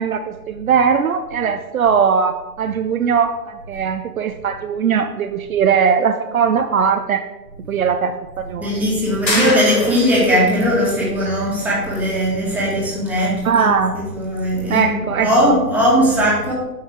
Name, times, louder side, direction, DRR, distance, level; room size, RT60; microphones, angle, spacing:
voice 1, 0.0-7.2 7.7-8.8 9.3-9.5 9.8-9.9 13.4-13.9 14.7-15.6, right 6 dB, 60° right, 7 dB, 0.6 m, -19 dB
voice 2, 8.6-13.7 13.9-16.5, equal, 5° right, -7 dB, 1.8 m, -19 dB
sound 1, 9.3-10.3, left 2 dB, 90° left, 2.1 m, -23 dB
8.6 x 5.6 x 3.5 m, 1.1 s
figure-of-eight pair, 135°, 49 cm